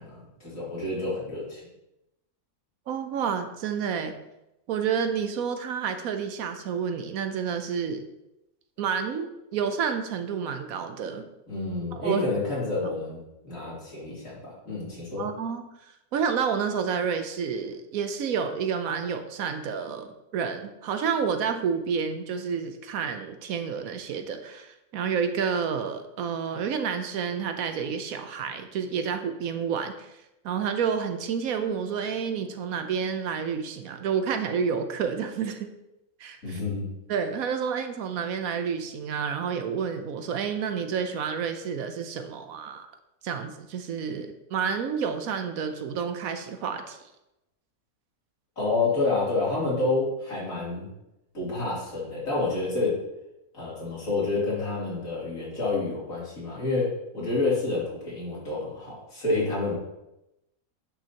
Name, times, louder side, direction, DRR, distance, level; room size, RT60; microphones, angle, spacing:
voice 1, 0.0-1.6 11.5-13.2 13.4-15.3 36.4-36.9 48.6-50.9 51.3-53.0 53.5-59.8, left 3 dB, 60° left, -7 dB, 3.4 m, -28 dB
voice 2, 2.9-4.2 4.7-8.0 8.8-11.3 11.9-12.2 15.2-15.6 16.1-30.1 30.4-35.7 36.2-36.6 37.1-42.9 43.2-47.0, right 6 dB, 70° right, 7 dB, 1.1 m, -29 dB
9.7 x 5.9 x 2.9 m, 0.90 s
omnidirectional pair, 1.6 m